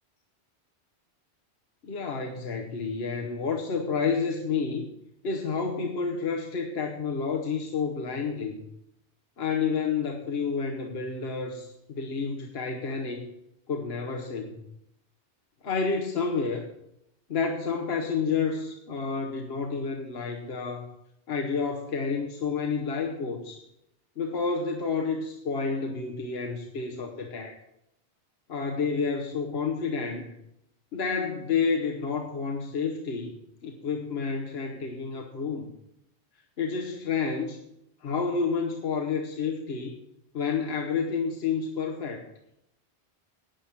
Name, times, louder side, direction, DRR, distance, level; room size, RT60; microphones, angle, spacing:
voice 1, 1.8-4.9 5.2-8.6 9.4-13.2 13.7-14.6 15.6-16.7 17.3-20.9 21.3-23.6 24.2-27.6 28.5-30.3 30.9-33.3 33.6-35.7 36.6-37.6 38.0-40.0 40.3-42.3, left 5 dB, 65° left, 2 dB, 1.2 m, -30 dB
10.5 x 8.7 x 5.6 m, 0.81 s
omnidirectional pair, 1.1 m